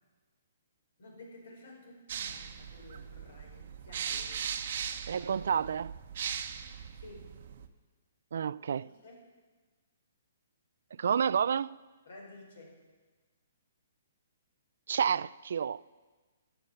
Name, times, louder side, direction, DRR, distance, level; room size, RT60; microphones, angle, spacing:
voice 1, 1.0-4.4 5.1-5.3 7.0-7.3 8.5-9.3 12.0-12.8, left 2 dB, 70° left, 4.9 m, -52 dB
sound 1, 2.1-7.7, right 8 dB, 50° right, 0.8 m, -39 dB
voice 2, 5.1-5.9 8.3-8.9 11.0-11.8 14.9-15.8, right 7 dB, 65° right, 0.3 m, -29 dB
13.5 x 7.8 x 7.0 m
hypercardioid pair, 160°, 0 cm